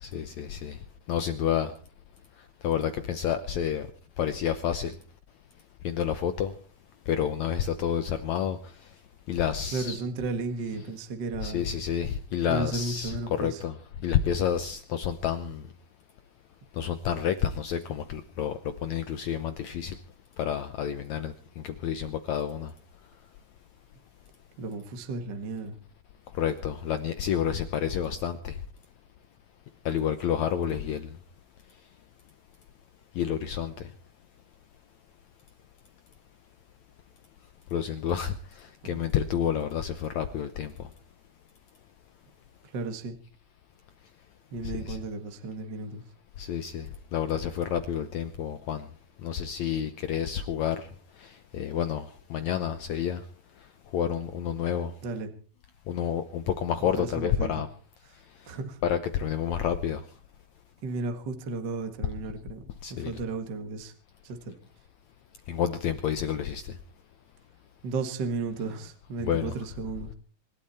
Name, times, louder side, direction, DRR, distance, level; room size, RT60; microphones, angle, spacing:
voice 1, 0.0-0.8 1.1-1.7 2.6-3.9 4.2-4.9 5.8-6.5 7.1-8.6 9.3-10.0 11.4-13.7 14.0-15.6 16.8-19.9 20.4-22.7 26.4-28.6 29.8-31.1 33.1-33.7 37.7-40.7 44.6-45.0 46.4-46.9 47.1-48.8 49.2-50.8 51.2-53.2 53.9-54.9 55.9-57.7 58.8-60.0 62.8-63.1 65.5-66.7 69.2-69.6, left 9 dB, 70° left, 11 dB, 1.7 m, -29 dB
voice 2, 9.7-11.7 12.4-13.6 24.6-25.7 38.8-38.9 42.7-43.2 44.5-46.0 55.0-55.3 56.9-57.6 58.4-58.8 60.8-62.6 62.9-63.9 64.2-64.6 67.8-70.1, right 3 dB, 40° right, 6 dB, 1.7 m, -34 dB
26.0 x 12.0 x 4.3 m, 0.41 s
omnidirectional pair, 4.2 m